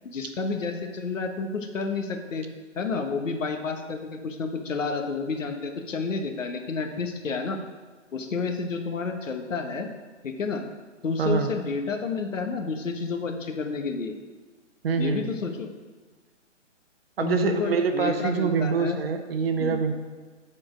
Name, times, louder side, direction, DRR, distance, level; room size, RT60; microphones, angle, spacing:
voice 1, 0.0-2.5 2.7-7.6 8.1-9.9 10.2-10.6 11.0-14.1 15.0-15.7 17.2-19.0 19.6-19.8, left 4 dB, 75° left, 5 dB, 1.2 m, -30 dB
voice 2, 11.2-11.5 14.8-15.3 17.2-19.9, right 5 dB, 50° right, 7 dB, 0.8 m, -25 dB
8.8 x 4.5 x 4.9 m, 1.4 s
hypercardioid pair, 145°, 39 cm